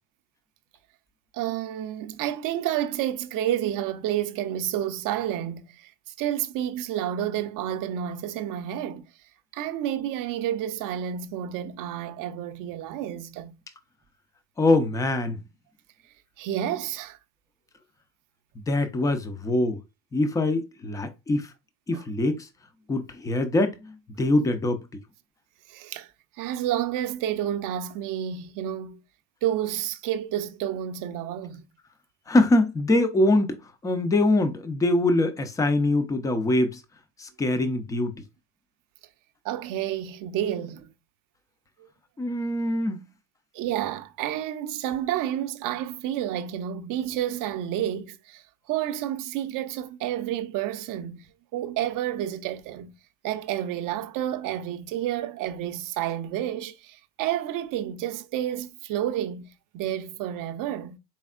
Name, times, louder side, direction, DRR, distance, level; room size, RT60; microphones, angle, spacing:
voice 1, 1.3-5.9 6.2-9.1 9.5-13.6 16.4-17.2 21.9-22.0 25.7-26.1 26.4-29.0 29.4-31.6 39.4-40.9 41.8-41.9 43.5-52.9 53.2-61.0, right 11 dB, 40° right, 0.6 m, -30 dB
voice 2, 14.6-15.4 18.7-19.8 20.1-21.5 21.9-22.5 22.9-24.8 32.3-36.8 37.2-38.1 42.2-43.0, left 2 dB, 10° left, 0.3 m, -23 dB
4.4 x 3.4 x 2.4 m
supercardioid pair, 100°, 49 cm